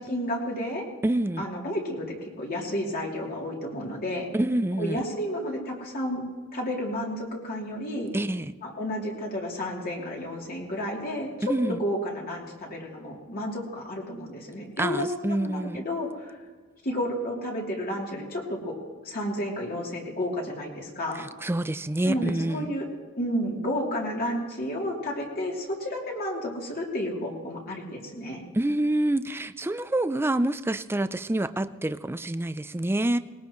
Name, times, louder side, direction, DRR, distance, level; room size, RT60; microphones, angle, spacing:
voice 1, 0.1-0.9 1.4-4.3 4.8-6.2 6.5-8.1 8.6-16.4 16.8-18.7 19.0-21.3 22.0-22.8 23.2-28.4, equal, 45° left, -3 dB, 3.1 m, -31 dB
voice 2, 1.0-1.5 4.3-5.0 8.1-8.5 11.4-11.8 14.8-15.9 21.1-22.7 28.5-33.2, right 1 dB, 10° right, 12 dB, 0.4 m, -27 dB
20.0 x 19.0 x 3.1 m, 1.4 s
head